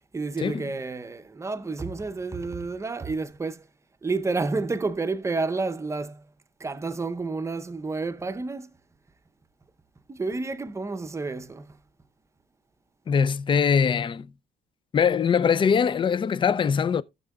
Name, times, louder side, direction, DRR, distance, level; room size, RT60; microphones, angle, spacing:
voice 1, 0.1-3.7 4.0-6.2 6.6-8.7 10.1-11.8, right 3 dB, 15° right, 0.7 m, -30 dB
voice 2, 13.1-14.3 14.9-17.0, left 6 dB, 30° left, 0.5 m, -22 dB
15.5 x 6.7 x 2.3 m
cardioid pair, 110°, 17 cm